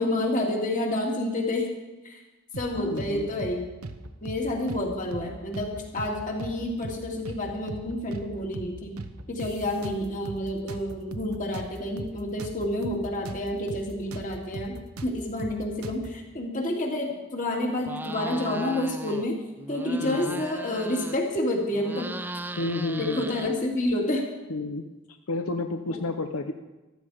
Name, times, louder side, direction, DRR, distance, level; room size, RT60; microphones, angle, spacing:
voice 1, 0.0-1.7 2.0-2.2 2.6-3.6 4.2-9.0 9.3-14.8 15.0-19.4 19.7-22.1 23.0-24.2 25.9-26.0, left 1 dB, 35° left, 0 dB, 2.5 m, -29 dB
sound 1, 2.5-3.1 3.4-3.6 3.8-4.8 5.1-5.3 5.5-6.6 6.8-7.0 7.2-8.3 8.5-8.7 9.0-10.4 10.7-13.4 13.7-13.8 14.1-16.1, right 2 dB, 80° right, 0.9 m, -38 dB
voice 2, 2.7-3.3 20.0-20.4 22.6-23.2 24.5-24.8 25.3-26.5, left 2 dB, 75° left, 6 dB, 0.7 m, -30 dB
sound 2, 17.8-19.3 19.6-21.4 21.7-23.9, right 2 dB, 10° right, 0.4 m, -37 dB
14.5 x 12.5 x 5.0 m, 1.1 s
head